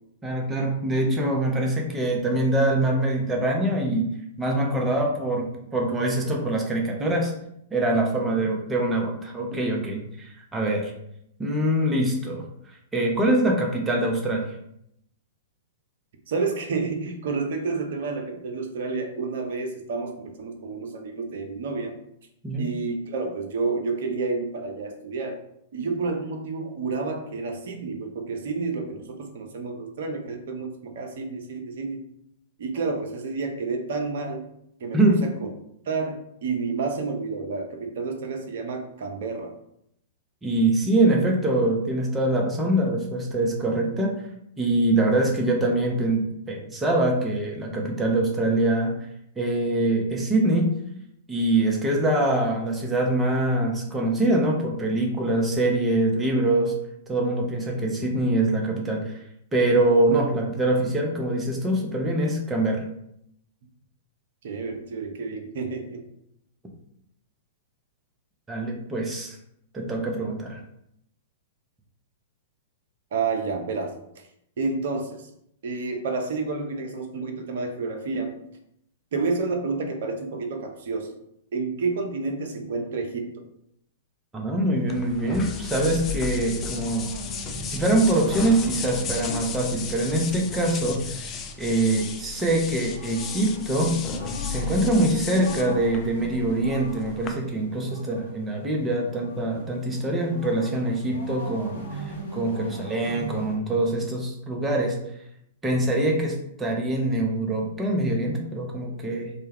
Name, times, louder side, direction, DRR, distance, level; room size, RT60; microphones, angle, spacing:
voice 1, 0.2-4.1 4.4-7.3 7.7-10.9 11.4-12.4 12.9-14.5 22.4-22.7 34.9-35.2 40.4-44.2 44.6-48.9 49.4-50.7 51.3-56.7 57.1-59.1 59.5-62.8 68.5-69.4 69.7-70.6 84.3-87.1 87.7-91.3 91.6-94.0 94.5-105.0 105.6-109.3, right 1 dB, 15° right, 0 dB, 0.6 m, -24 dB
voice 2, 16.3-22.0 22.6-25.4 25.7-32.0 32.6-34.5 34.8-35.5 35.9-39.5 64.4-66.0 73.1-74.3 74.6-75.3 75.6-78.3 79.1-81.1 81.5-83.3 99.5-99.6, right 4 dB, 55° right, 4 dB, 0.5 m, -30 dB
sound 1, 84.7-103.6, right 2 dB, 75° left, 0.9 m, -40 dB
sound 2, 84.9-97.3, left 5 dB, 25° left, 0.3 m, -34 dB
2.2 x 2.1 x 3.3 m, 0.75 s
figure-of-eight pair, 105°, 0 cm